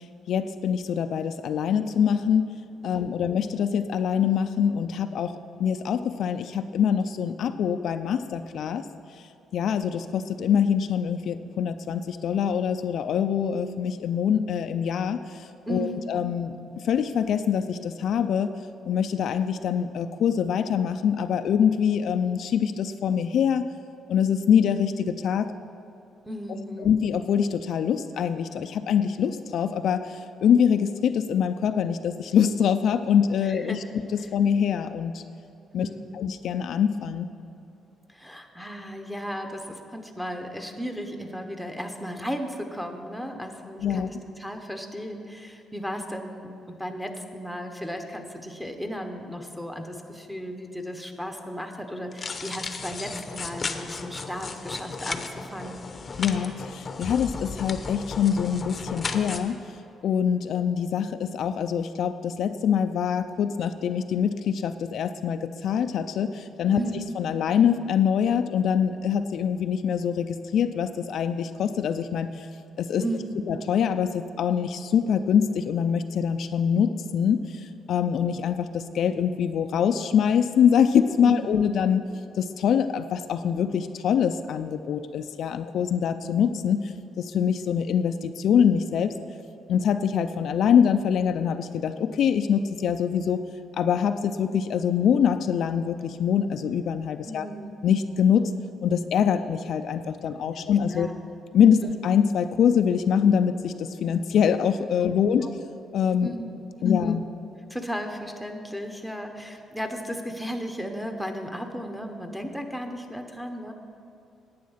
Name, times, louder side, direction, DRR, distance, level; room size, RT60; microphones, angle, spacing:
voice 1, 0.0-2.4 2.8-8.8 9.5-16.6 16.8-18.5 18.8-23.7 24.1-25.5 26.8-33.8 34.1-35.2 35.7-35.9 36.1-37.3 43.8-44.1 56.2-59.6 60.0-66.8 67.2-72.5 72.8-73.0 73.5-82.0 82.4-86.9 87.2-89.1 89.7-93.4 93.8-97.5 97.8-98.5 98.8-101.1 101.5-105.6 105.9-106.3 106.8-107.2, left 8 dB, 65° left, 9 dB, 0.4 m, -24 dB
voice 2, 2.8-3.2 15.7-16.1 26.3-26.9 33.5-33.8 34.2-34.3 35.8-36.2 38.1-55.9 66.7-67.1 73.0-73.5 81.2-81.8 97.2-97.7 100.5-101.1 101.8-101.9 105.0-105.1 105.4-105.5 106.2-106.6 106.8-107.2 107.7-113.7, equal, ahead, 4 dB, 1.0 m, -35 dB
sound 1, 52.1-59.4, left 4 dB, 35° left, 0.7 m, -35 dB
10.5 x 8.7 x 5.7 m, 2.8 s
cardioid pair, 115°, 0 cm